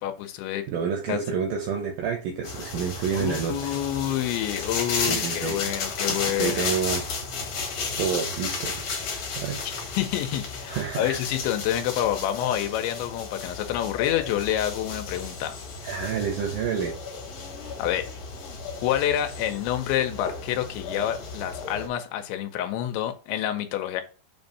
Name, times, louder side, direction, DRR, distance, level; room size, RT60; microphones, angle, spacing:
voice 1, 0.0-0.6 1.1-1.2 3.1-6.7 9.6-15.6 17.8-18.1 18.8-24.0, left 11 dB, 90° left, 3.0 m, -28 dB
voice 2, 0.7-3.8 5.1-5.6 6.1-7.1 8.0-9.6 10.7-11.2 15.8-17.0, right 7 dB, 90° right, 2.0 m, -29 dB
sound 1, 2.4-21.9, left 4 dB, 75° left, 1.4 m, -33 dB
7.3 x 2.7 x 5.3 m
omnidirectional pair, 5.0 m